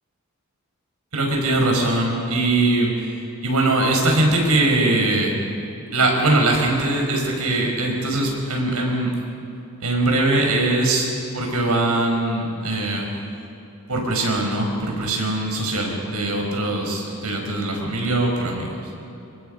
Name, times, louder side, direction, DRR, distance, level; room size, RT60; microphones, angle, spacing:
voice 1, 1.1-2.9 3.4-5.3 5.9-9.1 9.8-11.1 11.3-13.1 13.9-18.8, right 2 dB, 90° right, 1 dB, 5.2 m, -21 dB
28.0 x 23.0 x 5.3 m, 2.8 s
head